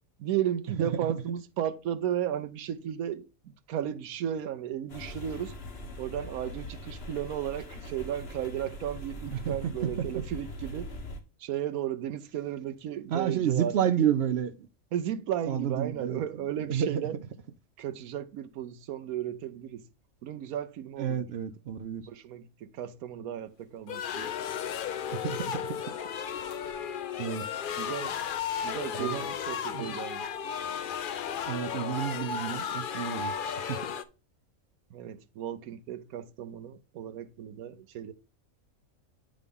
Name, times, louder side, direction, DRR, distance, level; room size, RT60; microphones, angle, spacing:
voice 1, 0.2-5.5 6.0-10.9 11.4-13.7 14.9-17.2 17.8-19.9 20.2-21.2 22.1-24.3 27.8-28.1 28.6-30.3 34.9-38.1, right 10 dB, 85° right, 1.1 m, -34 dB
sound 1, 4.9-11.2, equal, 45° left, 1.3 m, -41 dB
voice 2, 13.1-14.7 15.5-16.2 16.7-17.0 21.0-22.1 25.1-25.6 27.2-27.4 28.9-29.2 29.7-30.0 31.5-33.3 33.7-33.9, right 9 dB, 65° right, 0.6 m, -30 dB
sound 2, 23.9-34.0, left 8 dB, 70° left, 0.5 m, -34 dB
9.4 x 3.8 x 3.5 m
omnidirectional pair, 1.5 m